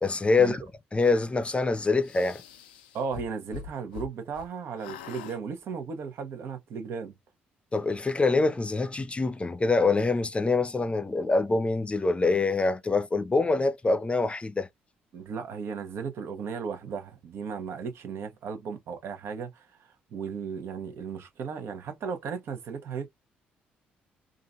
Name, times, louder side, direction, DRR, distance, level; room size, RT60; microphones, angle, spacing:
voice 1, 0.0-0.6 0.9-2.4 7.7-14.7, left 3 dB, 25° left, 0.6 m, -25 dB
sound 1, 2.0-4.5 4.8-5.4, left 8 dB, 85° left, 0.5 m, -43 dB
voice 2, 2.9-7.1 15.1-23.1, right 6 dB, 60° right, 1.0 m, -36 dB
3.8 x 2.5 x 2.4 m
hypercardioid pair, 50°, 5 cm